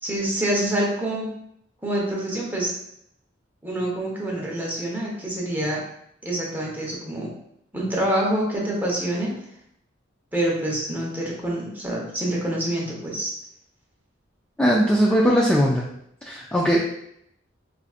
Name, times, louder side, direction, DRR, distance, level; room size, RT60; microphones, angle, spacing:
voice 1, 0.0-1.3 1.8-2.7 3.6-5.8 6.2-7.3 7.7-9.3 10.3-13.3, right 1 dB, 10° right, -4 dB, 0.9 m, -26 dB
voice 2, 14.6-15.8 16.2-16.8, equal, 5° left, -3 dB, 0.3 m, -19 dB
4.9 x 2.4 x 2.4 m, 0.73 s
head